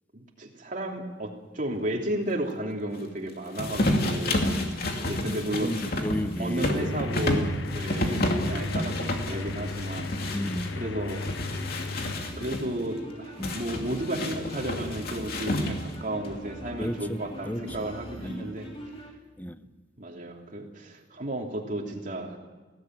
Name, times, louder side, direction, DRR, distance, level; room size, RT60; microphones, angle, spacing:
voice 1, 0.1-4.8 5.0-5.7 6.4-10.4 10.8-11.5 12.4-18.7 20.0-22.4, right 1 dB, 45° right, 3.1 m, -33 dB
sound 1, 3.6-10.7 11.1-12.6 13.4-16.0, left 1 dB, 55° left, 2.7 m, -30 dB
voice 2, 5.6-7.2 8.0-8.2 10.3-10.9 13.4-13.6 16.8-17.9 18.2-18.6 19.4-19.6, equal, 10° left, 0.8 m, -34 dB
sound 2, 6.8-12.2, left 4 dB, 75° left, 0.6 m, -36 dB
sound 3, 7.7-19.1, equal, 30° left, 3.1 m, -43 dB
20.5 x 17.0 x 9.2 m
head